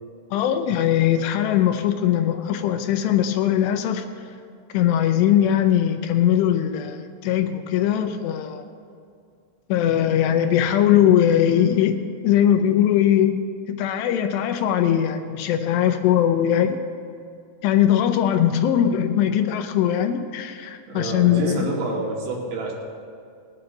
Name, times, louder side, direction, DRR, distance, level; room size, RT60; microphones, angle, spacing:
voice 1, 0.3-4.0 4.7-8.6 9.7-16.8 17.6-21.6, left 10 dB, 80° left, 7 dB, 2.6 m, -20 dB
voice 2, 20.9-22.7, right 2 dB, 80° right, -3 dB, 4.6 m, -27 dB
21.0 x 9.6 x 3.9 m, 2.3 s
omnidirectional pair, 5.3 m